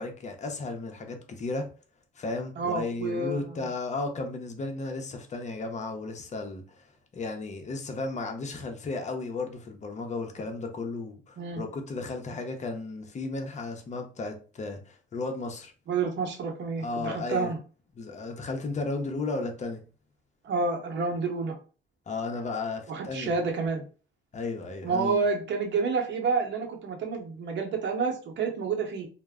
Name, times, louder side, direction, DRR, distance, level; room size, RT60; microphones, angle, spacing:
voice 1, 0.0-1.7 2.2-6.8 7.1-15.7 16.8-17.5 18.0-19.8 22.1-23.4 24.3-25.2, left 3 dB, 35° left, 0.6 m, -34 dB
voice 2, 2.6-3.5 11.4-11.6 15.9-17.6 20.4-21.6 22.9-23.8 24.8-29.1, right 4 dB, 65° right, 0.8 m, -29 dB
2.1 x 2.0 x 3.5 m
cardioid pair, 90°, 20 cm